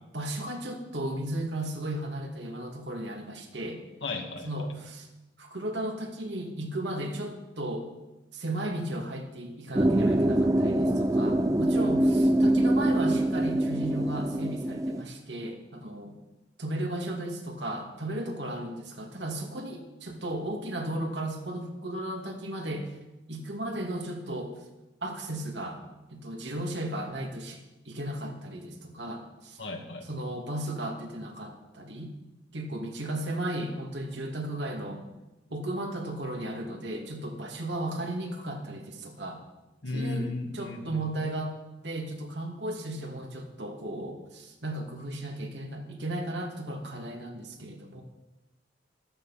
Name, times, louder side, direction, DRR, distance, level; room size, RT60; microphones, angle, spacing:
voice 1, 0.1-3.8 4.4-5.1 5.4-7.9 8.3-16.1 16.6-22.9 23.3-24.5 25.0-25.8 26.1-27.6 27.8-29.6 30.0-32.2 32.5-35.0 35.5-39.4 39.9-48.0, right 1 dB, 70° right, 2 dB, 2.5 m, -35 dB
voice 2, 4.0-4.7 29.6-30.1 39.8-41.0, left 2 dB, 75° left, 2 dB, 2.3 m, -35 dB
sound 1, 9.7-15.0, right 1 dB, 20° right, 0.6 m, -24 dB
14.0 x 13.0 x 5.9 m, 1.0 s
head